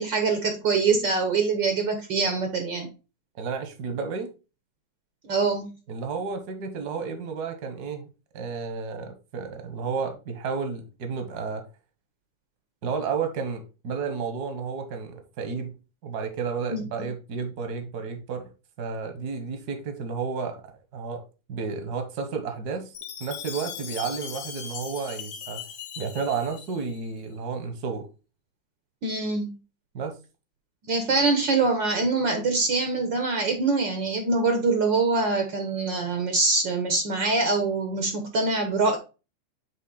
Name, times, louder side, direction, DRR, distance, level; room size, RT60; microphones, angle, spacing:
voice 1, 0.0-2.9 5.2-5.7 16.7-16.8 29.0-29.5 30.9-39.0, right 3 dB, 80° right, 1.0 m, -24 dB
voice 2, 3.4-4.3 5.9-8.1 8.3-11.6 12.8-15.7 16.0-18.4 18.8-20.6 20.9-22.9 23.2-25.6 26.0-28.1 29.9-30.1, right 5 dB, 60° right, 1.0 m, -32 dB
Chime, 22.9-27.1, left 8 dB, 65° left, 1.9 m, -39 dB
9.1 x 3.4 x 4.0 m
omnidirectional pair, 3.6 m